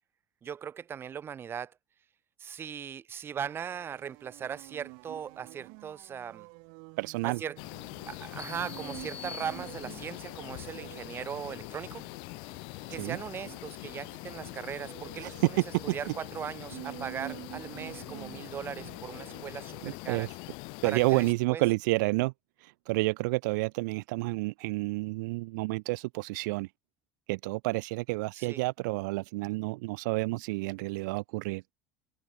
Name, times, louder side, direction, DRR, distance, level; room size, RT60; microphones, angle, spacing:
voice 1, 0.4-1.7 2.4-6.5 7.2-7.6 8.1-12.1 12.9-20.3 20.8-21.6 28.3-28.6, right 8 dB, 25° right, 2.2 m, -39 dB
sound 1, 3.4-20.0, right 37 dB, 65° right, 1.6 m, -49 dB
voice 2, 7.0-7.4 13.0-13.2 19.8-20.3 20.8-22.3 22.6-26.7 27.3-31.6, right 23 dB, 90° right, 1.3 m, -30 dB
sound 2, 7.6-21.3, left 33 dB, 60° left, 0.9 m, -43 dB
sound 3, 8.4-10.3, left 5 dB, 15° left, 0.7 m, -46 dB
cardioid pair, 165°, 10 cm